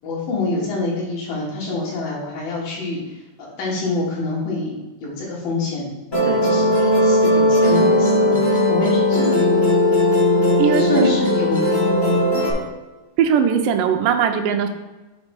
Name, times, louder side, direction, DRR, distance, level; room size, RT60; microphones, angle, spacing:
voice 1, 0.0-3.0 3.4-9.3 10.6-12.6, left 3 dB, 90° left, -4 dB, 3.4 m, -26 dB
Musical instrument, 6.1-12.5, left 1 dB, 35° left, 0.7 m, -17 dB
voice 2, 10.6-11.1 13.2-14.7, right 7 dB, 80° right, 6 dB, 2.1 m, -19 dB
7.3 x 3.2 x 5.2 m, 1.1 s
omnidirectional pair, 3.8 m